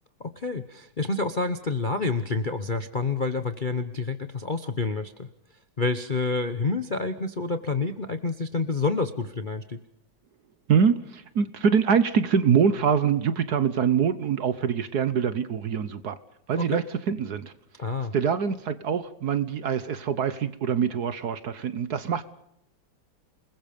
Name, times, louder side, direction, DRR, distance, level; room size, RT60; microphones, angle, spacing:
voice 1, 0.2-5.3 5.8-9.8 16.7-16.8 17.8-18.1, left 3 dB, 35° left, 9 dB, 0.8 m, -28 dB
voice 2, 10.7-16.2 16.5-17.5 18.1-22.2, right 7 dB, 55° right, 13 dB, 1.4 m, -24 dB
28.5 x 21.0 x 5.2 m, 0.74 s
omnidirectional pair, 2.2 m